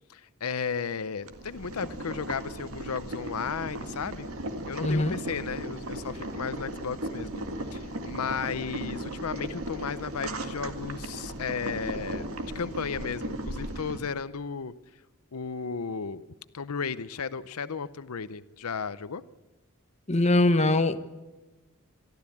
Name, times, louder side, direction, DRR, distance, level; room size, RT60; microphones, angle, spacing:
voice 1, 0.1-4.3 4.7-7.4 7.7-14.7 15.3-16.2 16.5-19.2, left 6 dB, 85° left, 0.7 m, -34 dB
Boiling, 1.2-14.0, right 1 dB, 70° right, 2.0 m, -36 dB
voice 2, 4.8-5.2 20.1-21.0, left 2 dB, 30° left, 1.0 m, -22 dB
22.5 x 13.5 x 8.5 m
head